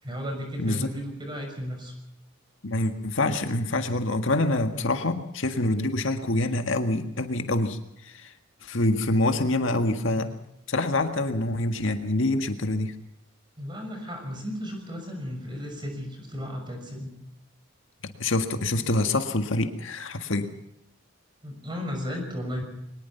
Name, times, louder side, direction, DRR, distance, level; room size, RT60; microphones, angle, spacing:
voice 1, 0.0-1.9 13.6-17.2 21.4-22.6, equal, 20° right, 4 dB, 6.1 m, -34 dB
voice 2, 0.6-0.9 2.6-7.8 8.0-8.3 8.6-10.4 10.7-12.9 18.2-20.5, left 2 dB, 65° left, 6 dB, 1.8 m, -26 dB
22.5 x 20.0 x 5.7 m, 0.81 s
head